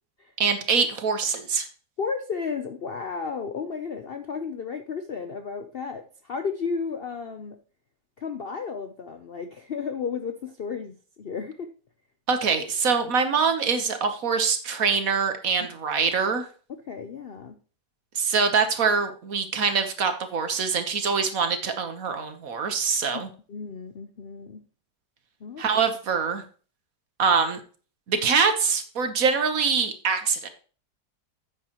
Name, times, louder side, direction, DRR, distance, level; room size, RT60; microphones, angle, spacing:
voice 1, 0.4-1.7 12.3-16.4 18.1-23.3 25.6-26.4 27.2-27.6 28.1-30.5, right 5 dB, 55° right, 8 dB, 1.5 m, -24 dB
voice 2, 2.0-7.6 8.2-11.7 16.7-17.6 23.1-24.6 25.4-25.6, left 5 dB, 55° left, 7 dB, 0.6 m, -33 dB
9.6 x 8.5 x 3.0 m, 0.38 s
omnidirectional pair, 1.8 m